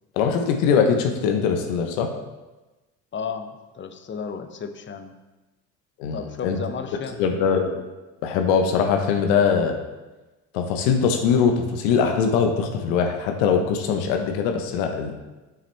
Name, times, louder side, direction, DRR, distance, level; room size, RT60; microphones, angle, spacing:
voice 1, 0.2-2.1 6.0-6.6 7.2-7.8 8.2-9.8 10.5-15.2, left 6 dB, 75° left, 4 dB, 0.9 m, -22 dB
voice 2, 3.1-5.1 6.1-7.2, left 6 dB, 25° left, 8 dB, 0.8 m, -33 dB
7.3 x 6.0 x 3.3 m, 1.1 s
hypercardioid pair, 65°, 42 cm